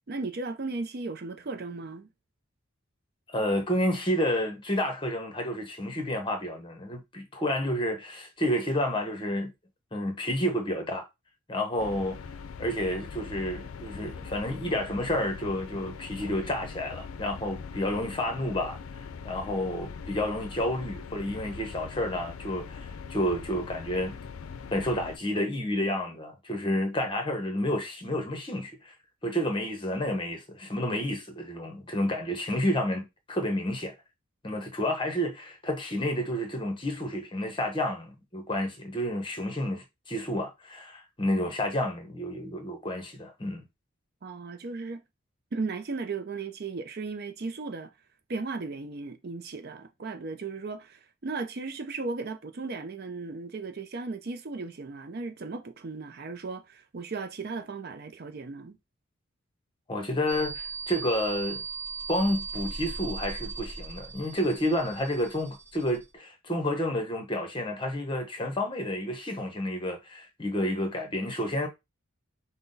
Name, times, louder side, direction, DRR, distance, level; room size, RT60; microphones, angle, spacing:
voice 1, 0.1-2.1 44.2-45.0 45.5-47.9 48.3-58.8, right 3 dB, 50° right, 0.5 m, -36 dB
voice 2, 3.3-9.5 9.9-11.1 11.5-12.2 12.6-18.8 19.2-24.2 24.7-28.9 29.2-33.9 34.4-43.6 59.9-61.6 62.1-71.7, left 1 dB, 25° left, 1.0 m, -30 dB
sound 1, 11.8-25.2, left 5 dB, 90° left, 0.4 m, -42 dB
sound 2, 60.3-66.1, right 5 dB, 10° right, 1.0 m, -38 dB
5.8 x 2.2 x 3.9 m
head